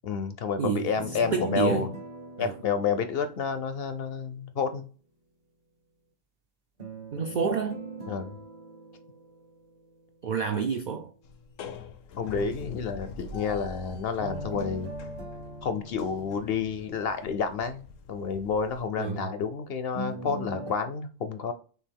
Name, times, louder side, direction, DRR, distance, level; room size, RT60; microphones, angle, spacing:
voice 1, 0.0-1.9 2.4-4.9 8.1-8.4 12.2-14.9 15.6-21.5, left 6 dB, 60° left, 0.7 m, -30 dB
voice 2, 0.6-1.9 2.4-2.6 7.1-7.8 10.2-11.1 19.0-19.3, right 6 dB, 75° right, 0.4 m, -29 dB
sound 1, 1.0-4.0 6.8-10.0 14.2-17.3 19.9-20.7, right 2 dB, 40° right, 0.7 m, -40 dB
sound 2, 11.2-18.9, left 5 dB, 80° left, 1.0 m, -43 dB
5.9 x 2.4 x 3.5 m
omnidirectional pair, 1.3 m